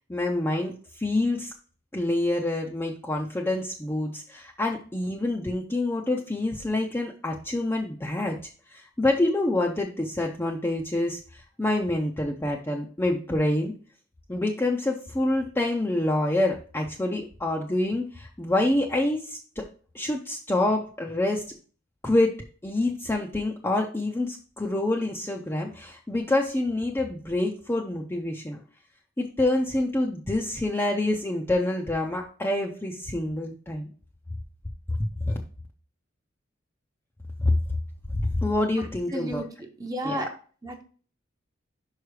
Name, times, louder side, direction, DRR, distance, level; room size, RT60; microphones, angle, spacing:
voice 1, 0.1-1.5 1.9-8.4 8.7-13.7 14.3-19.6 19.9-21.4 22.0-22.3 22.6-28.6 29.2-33.9 34.9-35.4 37.4-37.8 38.1-39.4 40.0-40.3, left 1 dB, 10° left, -1 dB, 0.5 m, -27 dB
voice 2, 38.8-39.5 39.8-40.3 40.6-40.8, equal, 20° right, 4 dB, 0.8 m, -32 dB
5.7 x 4.8 x 4.7 m, 0.41 s
head